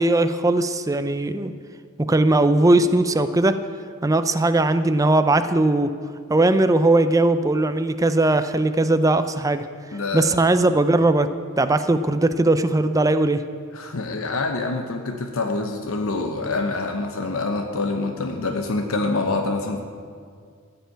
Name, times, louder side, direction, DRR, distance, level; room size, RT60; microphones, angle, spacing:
voice 1, 0.0-1.5 2.1-3.6 4.0-5.9 6.3-9.7 10.1-11.3 11.6-13.4, right 2 dB, 15° right, 11 dB, 0.5 m, -19 dB
voice 2, 9.9-10.3 13.7-19.8, left 3 dB, 75° left, 3 dB, 0.9 m, -26 dB
14.5 x 5.7 x 9.0 m, 2.1 s
head